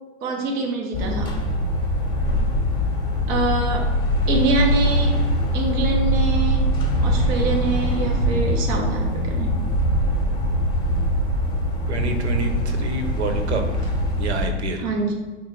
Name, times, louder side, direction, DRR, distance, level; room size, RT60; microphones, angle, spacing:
voice 1, 0.2-1.4 3.3-3.9 4.3-5.2 5.5-6.7 7.0-9.5 14.8-15.1, right 3 dB, 15° right, 0 dB, 0.4 m, -25 dB
sound 1, 0.9-14.5, equal, 10° left, 0.8 m, -22 dB
voice 2, 11.9-13.6 14.2-14.9, right 2 dB, 65° right, 6 dB, 0.8 m, -27 dB
4.2 x 2.6 x 4.3 m, 1.3 s
figure-of-eight pair, 105°, 36 cm